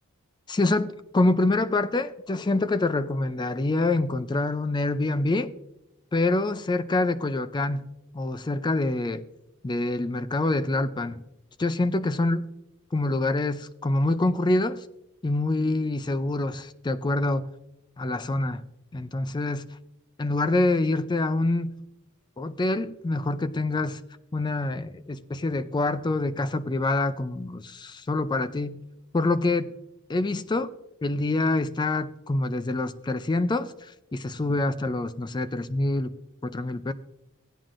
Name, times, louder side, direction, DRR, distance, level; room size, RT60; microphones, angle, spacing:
voice 1, 0.5-5.5 6.1-7.9 8.1-9.2 9.6-11.2 11.6-12.5 12.9-14.8 15.2-17.5 18.0-18.6 18.9-19.6 20.2-21.8 22.4-24.0 24.3-28.8 29.1-29.7 30.1-30.7 31.0-36.1 36.4-36.9, left 2 dB, 20° left, 0.4 m, -26 dB
17.0 x 9.0 x 2.5 m
head